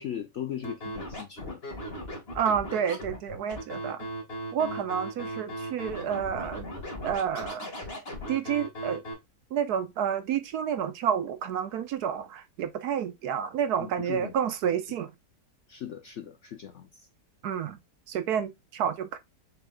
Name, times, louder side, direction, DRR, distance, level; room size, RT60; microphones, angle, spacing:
voice 1, 0.0-1.6 4.6-4.9 13.8-14.4 14.6-14.7 15.7-17.1, left 10 dB, 65° left, 0.7 m, -39 dB
Scratching (performance technique), 0.6-9.1, equal, 35° left, 1.9 m, -37 dB
voice 2, 2.3-4.1 4.5-6.7 7.0-7.7 8.3-9.0 9.5-15.1 17.4-17.8 18.1-19.2, right 8 dB, 70° right, 1.3 m, -29 dB
6.8 x 3.5 x 2.2 m
omnidirectional pair, 1.8 m